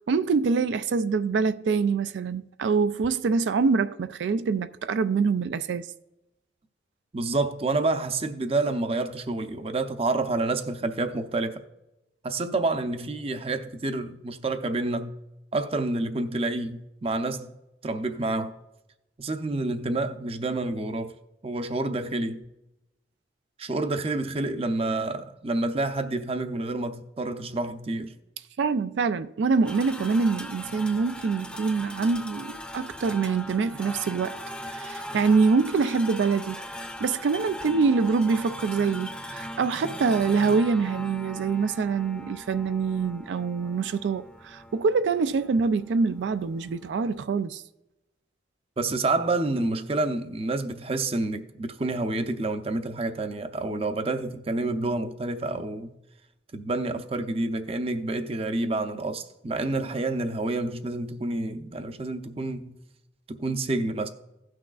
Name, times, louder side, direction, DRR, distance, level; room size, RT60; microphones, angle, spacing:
voice 1, 0.1-5.9 28.6-34.4 34.7-36.6 37.0-47.6, right 4 dB, 85° right, 0.4 m, -25 dB
voice 2, 7.1-11.6 12.2-15.1 15.5-17.5 17.8-18.5 19.2-21.1 21.4-22.4 23.6-28.1 48.8-56.0 56.5-62.8 63.3-64.1, right 2 dB, 35° right, 0.6 m, -28 dB
sound 1, 29.6-47.2, equal, 5° left, 0.6 m, -40 dB
16.5 x 6.2 x 2.4 m
head